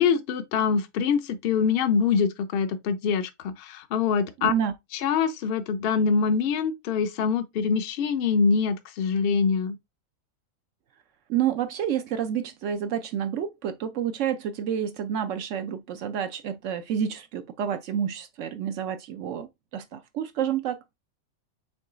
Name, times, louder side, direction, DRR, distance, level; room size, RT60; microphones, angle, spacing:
voice 1, 0.0-4.5 4.9-9.8, left 6 dB, 60° left, 0.7 m, -24 dB
voice 2, 4.4-4.7 11.3-20.9, right 9 dB, 70° right, 0.9 m, -29 dB
6.1 x 2.3 x 3.8 m
omnidirectional pair, 1.4 m